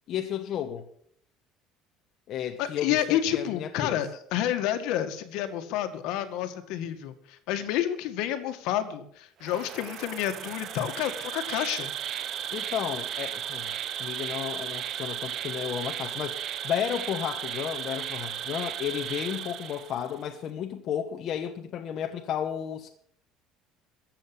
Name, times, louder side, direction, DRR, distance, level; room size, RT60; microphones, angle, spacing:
voice 1, 0.1-0.9 2.3-4.0 12.5-13.7 14.0-22.9, left 9 dB, 40° left, 1.1 m, -33 dB
voice 2, 2.6-11.9, left 11 dB, 65° left, 1.8 m, -29 dB
Insect, 9.4-20.2, right 10 dB, 40° right, 0.9 m, -35 dB
14.5 x 7.7 x 8.7 m
cardioid pair, 165°, 0 cm